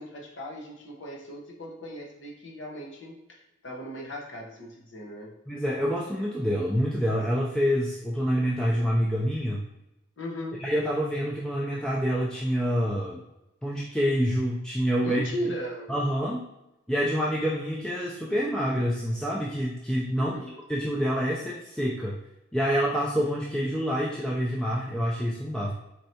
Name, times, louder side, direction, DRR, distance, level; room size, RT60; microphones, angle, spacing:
voice 1, 0.0-5.3 10.2-10.6 15.0-15.9 20.2-20.6, equal, 80° left, -1 dB, 0.9 m, -37 dB
voice 2, 5.5-9.6 10.6-13.2 13.6-15.2 15.9-16.4 16.9-22.2 22.5-25.7, equal, 5° left, -5 dB, 0.3 m, -27 dB
4.4 x 3.2 x 2.7 m, 0.91 s
head